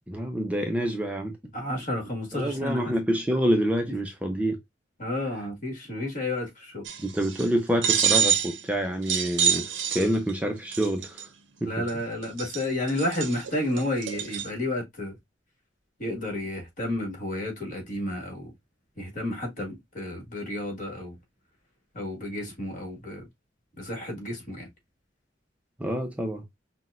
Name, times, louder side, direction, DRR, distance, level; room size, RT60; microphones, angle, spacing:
voice 1, 0.1-1.4 2.3-4.6 7.0-11.3 11.6-11.8 25.8-26.4, equal, 10° right, 0.5 m, -27 dB
voice 2, 1.5-2.9 5.0-6.8 11.6-15.1 16.0-18.5 19.0-21.2 21.9-23.3 23.8-24.7, left 1 dB, 45° left, 1.6 m, -31 dB
sound 1, 6.8-7.5 7.8-8.6 9.1-10.3 10.7-11.2 11.9-12.0 12.2-14.5, right 8 dB, 80° right, 0.7 m, -26 dB
5.8 x 2.2 x 2.4 m
head